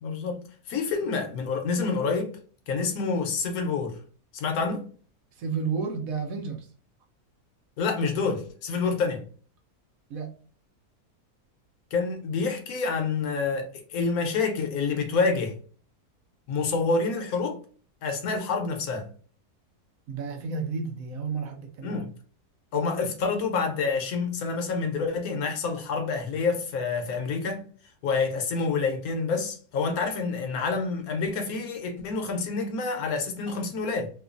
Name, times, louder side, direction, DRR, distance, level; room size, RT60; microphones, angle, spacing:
voice 1, 0.0-0.4 0.7-2.3 2.7-4.0 4.3-4.8 7.8-9.3 11.9-15.5 16.5-17.6 18.0-19.1 21.8-22.1 22.7-27.6 28.0-34.1, left 4 dB, 75° left, 1.1 m, -28 dB
voice 2, 5.4-6.7 10.1-10.3 20.1-22.1 33.5-33.6, right 5 dB, 70° right, 1.0 m, -32 dB
3.0 x 2.3 x 2.4 m
omnidirectional pair, 1.6 m